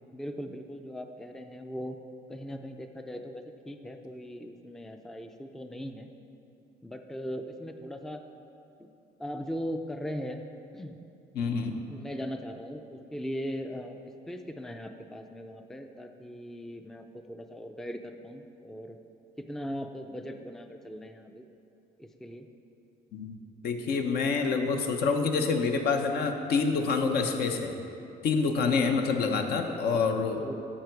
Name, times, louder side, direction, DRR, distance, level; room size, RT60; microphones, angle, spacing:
voice 1, 0.1-2.0 2.3-6.1 6.8-8.2 8.8-8.9 9.2-10.4 10.7-11.0 11.9-14.0 14.3-19.0 19.4-21.5 22.0-22.5 29.9-30.1 30.4-30.5, equal, ahead, 6 dB, 0.4 m, -39 dB
voice 2, 11.3-11.8 23.1-23.3 23.6-27.8 28.2-30.4, left 4 dB, 70° left, 4 dB, 0.9 m, -27 dB
9.9 x 7.6 x 4.6 m, 2.7 s
cardioid pair, 110°, 17 cm